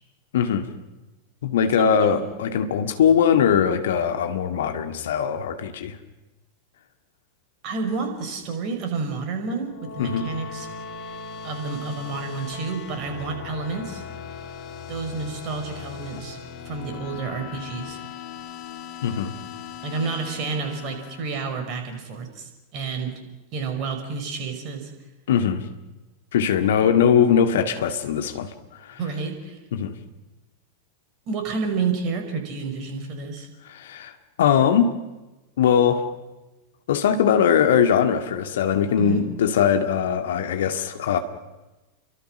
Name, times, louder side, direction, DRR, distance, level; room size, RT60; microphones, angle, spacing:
voice 1, 0.3-0.7 1.4-6.0 10.0-10.2 19.0-19.3 25.3-25.6 26.3-28.5 28.8-29.0 29.7-29.9 33.7-34.1 34.4-34.9 35.6-36.1 36.9-41.2, left 8 dB, 60° left, 7 dB, 2.1 m, -21 dB
voice 2, 1.8-2.3 7.6-10.7 11.4-14.0 14.9-16.4 16.7-18.0 19.8-23.2 23.5-24.9 29.0-29.6 31.3-33.5 39.0-39.3, right 4 dB, 40° right, 5 dB, 5.4 m, -30 dB
sound 1, 9.5-21.9, left 6 dB, 40° left, 3.5 m, -38 dB
29.5 x 24.0 x 6.3 m, 1.1 s
figure-of-eight pair, 90°, 0 cm